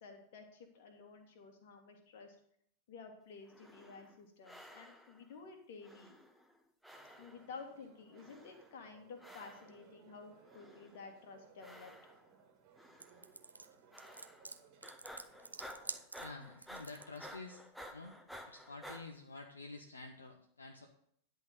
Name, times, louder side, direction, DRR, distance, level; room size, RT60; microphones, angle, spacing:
voice 1, 0.0-2.4 2.9-6.1 7.2-11.9, left 4 dB, 55° left, 4 dB, 1.8 m, -52 dB
sound 1, 3.4-4.2 4.4-5.3 5.8-6.6 6.8-7.6 8.1-8.8 9.2-9.9 10.4-11.1 11.6-12.4 12.8-13.2 13.9-14.5 14.8-19.0, equal, ahead, 1.1 m, -53 dB
sound 2, 6.9-16.0, right 6 dB, 40° right, 2.0 m, -64 dB
sound 3, 13.0-17.2, right 3 dB, 80° right, 0.5 m, -47 dB
voice 2, 16.2-17.6 17.9-18.2 18.5-20.9, left 3 dB, 75° left, 3 dB, 0.8 m, -49 dB
10.5 x 3.9 x 7.6 m, 0.68 s
figure-of-eight pair, 90°, 0 cm